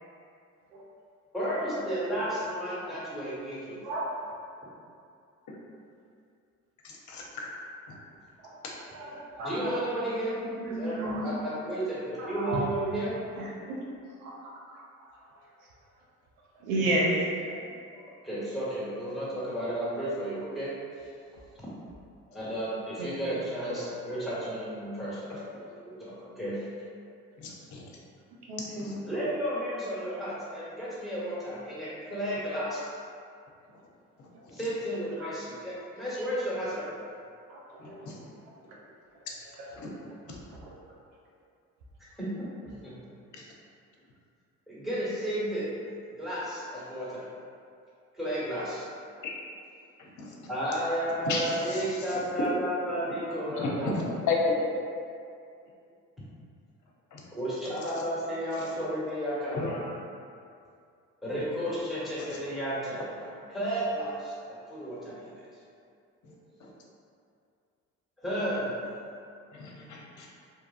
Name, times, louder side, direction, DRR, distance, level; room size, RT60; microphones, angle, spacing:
voice 1, 1.3-3.8 9.4-10.4 10.7-11.0 11.2-13.2 17.5-17.6 18.2-20.7 21.0-21.1 21.6-21.7 22.3-26.7 29.0-32.8 34.5-36.9 42.2-43.1 44.7-45.7 46.1-47.2 48.1-48.9 50.5-54.2 57.4-59.7 61.2-65.5 68.2-68.9, equal, ahead, -10 dB, 1.2 m, -33 dB
voice 2, 6.8-7.5 7.9-8.0 8.6-8.7 9.1-9.2 27.4-27.8 28.6-29.0 34.2-34.6 37.8-38.2 39.8-39.9 43.3-43.4 49.2-49.3 50.0-50.4 51.2-52.2 53.5-54.7 57.1-57.2 58.6-58.7 59.5-59.9 62.2-62.4 66.2-66.7 69.5-70.3, left 3 dB, 45° left, -2 dB, 0.7 m, -34 dB
voice 3, 8.9-9.7 10.7-11.3 12.2-12.7 13.3-13.8 14.2-15.1 16.6-17.6 17.9-18.0 23.0-23.3 23.7-23.9 25.3-25.4 28.5-28.9 35.2-35.3 37.5-38.3 39.6-39.7, right 1 dB, 75° right, -4 dB, 0.7 m, -33 dB
2.8 x 2.4 x 2.4 m, 2.4 s
hypercardioid pair, 45°, 42 cm